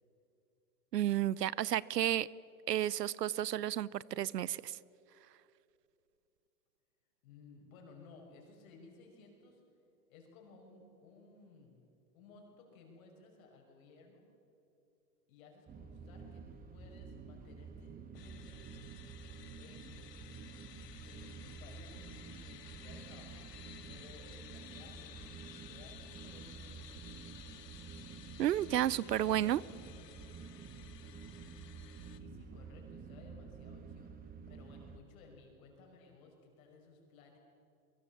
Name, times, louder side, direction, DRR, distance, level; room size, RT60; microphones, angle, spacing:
voice 1, 0.9-2.3 2.7-4.8 28.4-29.6, right 12 dB, 90° right, 22 dB, 0.7 m, -32 dB
voice 2, 7.2-9.6 10.1-11.9 12.1-14.2 15.3-18.9 19.6-20.4 21.0-23.4 23.9-27.0 32.1-37.4, left 4 dB, 60° left, 1 dB, 5.9 m, -58 dB
sound 1, 15.7-35.0, right 5 dB, 20° right, 1.3 m, -50 dB
sound 2, 18.1-32.2, left 10 dB, 80° left, 1.4 m, -55 dB
24.5 x 23.5 x 7.2 m, 2.8 s
hypercardioid pair, 125°, 47 cm